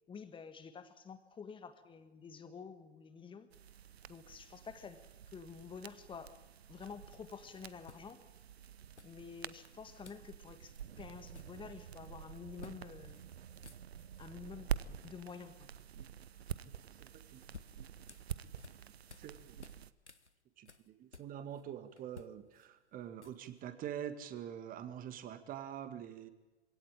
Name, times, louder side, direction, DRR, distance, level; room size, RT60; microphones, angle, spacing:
voice 1, 0.1-3.5 4.1-5.0 5.3-6.3 6.7-8.2 9.0-13.2 14.2-15.7, left 6 dB, 15° left, 10 dB, 1.8 m, -49 dB
sound 1, 3.5-19.9, right 9 dB, 65° right, 1.0 m, -47 dB
sound 2, 7.2-7.3 7.8-8.5 9.0-9.6 10.0-10.3 10.6-10.8 11.1-12.0 12.6-12.8 13.1-13.2 13.5-14.2 17.1-19.3 19.6-21.6 22.0-23.6, left 4 dB, 85° left, 1.2 m, -56 dB
voice 2, 17.0-17.4 19.2-19.6 20.6-26.3, right 9 dB, 25° right, 10 dB, 1.9 m, -45 dB
26.0 x 17.5 x 9.0 m, 1.1 s
figure-of-eight pair, 100°, 33 cm